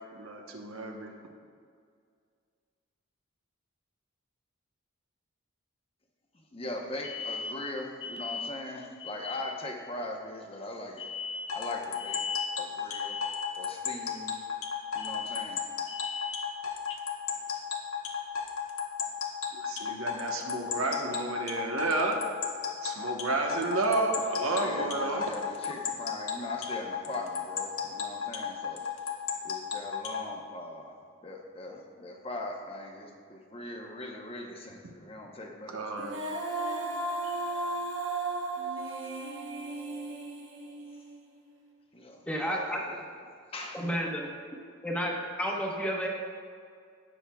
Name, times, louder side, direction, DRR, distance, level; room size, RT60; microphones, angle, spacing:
voice 1, 0.1-1.1 19.5-22.2 22.8-25.2 34.8-34.9 35.7-36.2, right 2 dB, 85° right, 2 dB, 1.1 m, -31 dB
voice 2, 6.3-14.3 14.9-16.6 16.9-17.0 24.5-28.9 29.4-35.8 37.2-37.6 39.0-39.2 41.9-43.0 43.5-43.9, left 2 dB, 25° left, 1 dB, 0.8 m, -39 dB
sound 1, 11.5-30.2, left 7 dB, 85° left, 1.1 m, -33 dB
Female singing, 36.0-41.2, right 2 dB, 60° right, 1.0 m, -35 dB
voice 3, 42.3-42.8 43.7-44.3 44.8-46.1, equal, 5° left, -2 dB, 1.0 m, -31 dB
17.0 x 6.2 x 2.3 m, 2.2 s
head